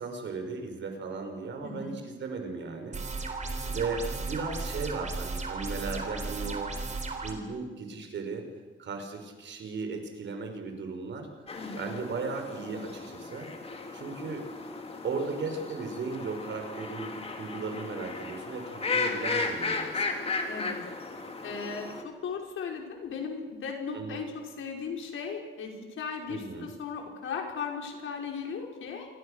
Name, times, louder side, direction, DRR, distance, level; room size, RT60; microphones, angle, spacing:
voice 1, 0.0-3.0 3.7-6.8 7.2-8.5 8.8-11.3 11.7-13.5 13.9-14.5 15.0-20.2 23.9-24.2 26.3-26.7, right 4 dB, 65° right, 5 dB, 5.0 m, -36 dB
voice 2, 1.6-2.0 11.5-11.9 20.5-20.8 21.4-29.1, left 5 dB, 75° left, 2 dB, 5.6 m, -37 dB
sound 1, 2.9-7.3, right 3 dB, 35° right, 3.9 m, -35 dB
sound 2, 11.5-22.0, left 3 dB, 30° left, 2.9 m, -35 dB
28.5 x 23.0 x 6.6 m, 1.3 s
wide cardioid pair, 145°, 21 cm